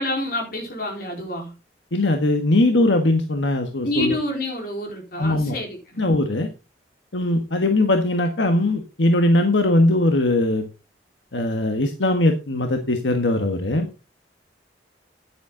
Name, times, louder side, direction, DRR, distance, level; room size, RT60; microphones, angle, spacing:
voice 1, 0.0-1.5 3.8-6.0, left 1 dB, 55° left, 4.3 m, -28 dB
voice 2, 1.9-4.2 5.2-5.6 6.0-6.5 7.1-10.7 11.3-13.9, left 1 dB, 85° left, 1.4 m, -20 dB
10.5 x 9.4 x 3.8 m
head